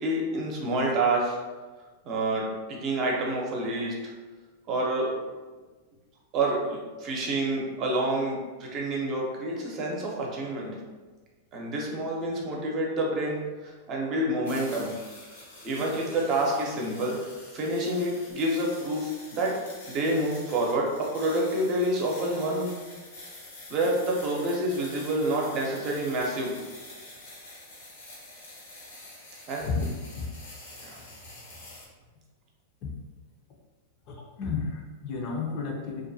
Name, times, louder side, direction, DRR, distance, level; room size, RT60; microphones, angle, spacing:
voice 1, 0.0-1.4 2.0-4.1 4.7-5.1 6.3-10.7 11.5-14.9 15.6-19.6 19.9-22.7 23.7-26.6 29.5-29.7 30.8-31.0, right 1 dB, 40° right, -2 dB, 0.7 m, -28 dB
sound 1, 14.4-31.9, left 2 dB, 85° left, 1.0 m, -47 dB
voice 2, 29.6-30.3 31.4-31.6 32.8-32.9 34.1-36.1, left 4 dB, 50° left, 0 dB, 0.6 m, -32 dB
2.5 x 2.2 x 2.7 m, 1.3 s
hypercardioid pair, 115°, 0 cm